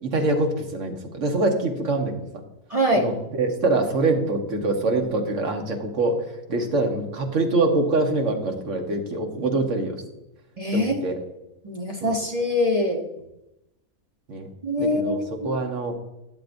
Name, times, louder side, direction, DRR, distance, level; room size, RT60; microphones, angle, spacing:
voice 1, 0.0-2.3 2.9-10.0 10.7-11.2 12.0-12.1 14.3-14.5 14.8-15.2 15.4-16.0, right 2 dB, 55° right, 3 dB, 1.4 m, -24 dB
voice 2, 2.7-3.1 10.6-11.0 11.6-13.0 14.6-15.5, left 1 dB, 30° right, 1 dB, 0.7 m, -23 dB
10.5 x 7.4 x 2.6 m, 0.92 s
omnidirectional pair, 1.6 m